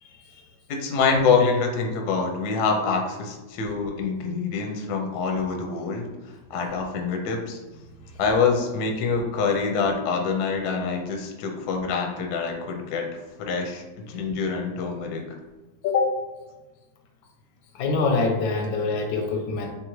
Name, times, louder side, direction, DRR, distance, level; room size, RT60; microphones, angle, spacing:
voice 1, 0.0-0.4 8.0-8.1 15.8-16.1 17.7-19.7, left 4 dB, 85° left, 3 dB, 1.4 m, -25 dB
voice 2, 0.7-6.1 6.5-7.6 8.2-13.1 13.4-15.2, left 5 dB, 70° left, 2 dB, 1.0 m, -25 dB
3.5 x 3.4 x 3.1 m, 1.1 s
omnidirectional pair, 2.1 m